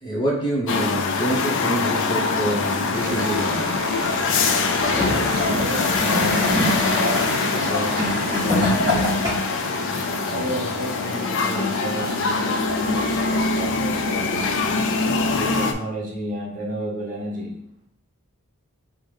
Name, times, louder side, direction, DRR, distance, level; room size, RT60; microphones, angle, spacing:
voice 1, 0.0-3.7, right 1 dB, 20° left, -5 dB, 0.9 m, -26 dB
sound 1, 0.7-15.7, left 4 dB, 60° left, 0.4 m, -23 dB
sound 2, 2.9-13.4, right 3 dB, 80° right, 0.4 m, -35 dB
Gurgling / Toilet flush, 4.7-9.6 10.5-10.6, left 1 dB, 20° right, 1.3 m, -25 dB
voice 2, 5.0-7.3 7.5-9.1 10.3-14.8 15.3-17.5, right 1 dB, 40° right, -3 dB, 0.9 m, -32 dB
5.2 x 2.1 x 3.3 m, 0.71 s
head